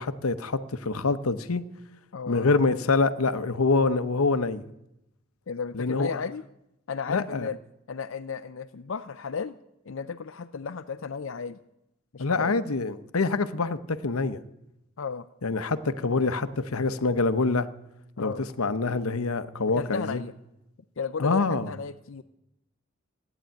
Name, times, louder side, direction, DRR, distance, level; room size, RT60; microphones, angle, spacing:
voice 1, 0.0-1.6 2.3-4.7 5.7-6.2 7.1-7.5 12.2-14.4 15.4-17.7 18.2-20.2 21.2-21.7, left 3 dB, 90° left, 13 dB, 0.9 m, -26 dB
voice 2, 2.1-2.6 5.5-6.4 6.9-7.6 7.9-9.6 9.9-11.6 12.1-12.6 15.0-15.3 18.2-18.4 19.8-20.3 21.0-22.2, left 5 dB, 65° left, 9 dB, 0.5 m, -34 dB
15.5 x 9.8 x 9.1 m, 0.87 s
head